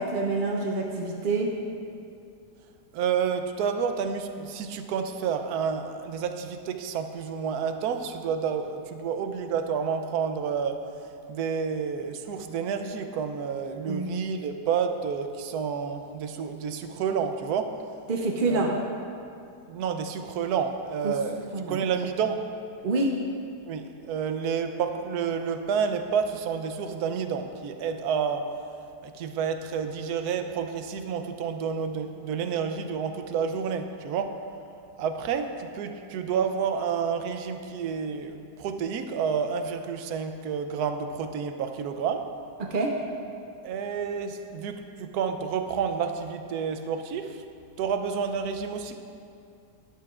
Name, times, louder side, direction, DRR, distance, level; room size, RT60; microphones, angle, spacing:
voice 1, 0.0-1.5 13.9-14.1 18.1-18.7 21.0-21.1 21.5-21.8 22.8-23.2 42.6-42.9, right 3 dB, 55° right, 0 dB, 0.6 m, -26 dB
voice 2, 2.9-10.8 11.3-17.8 18.5-18.9 19.7-22.5 23.7-28.5 29.0-34.4 35.0-42.3 43.6-47.4 47.8-49.0, right 6 dB, 75° right, 7 dB, 1.1 m, -29 dB
12.5 x 11.5 x 2.4 m, 2.5 s
omnidirectional pair, 1.8 m